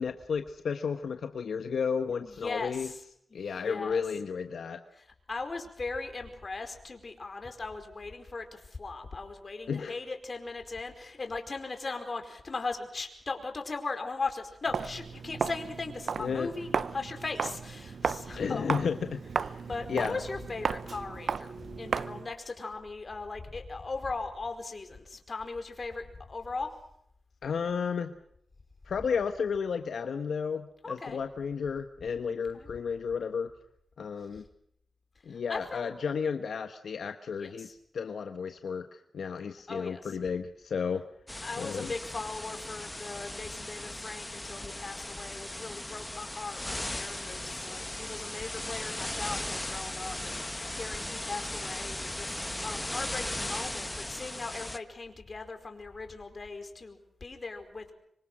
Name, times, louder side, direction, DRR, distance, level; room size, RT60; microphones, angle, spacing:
voice 1, 0.0-2.9 3.3-4.8 9.7-10.0 16.2-16.5 18.4-19.6 19.9-20.2 27.4-28.1 28.9-33.5 34.0-34.4 35.3-41.0 41.6-41.9, left 6 dB, 80° left, 7 dB, 1.2 m, -33 dB
voice 2, 2.3-3.0 3.3-4.0 4.9-18.8 19.6-26.7 30.8-31.2 32.5-32.7 35.5-35.9 37.4-37.7 39.7-40.1 41.4-52.3 52.6-57.9, left 3 dB, 45° left, 6 dB, 4.8 m, -38 dB
Walk footsteps, 14.7-22.3, right 6 dB, 70° right, 0.8 m, -35 dB
sound 1, 41.3-54.8, left 1 dB, 15° left, 1.3 m, -37 dB
25.5 x 24.5 x 6.3 m, 0.70 s
cardioid pair, 80°, 0 cm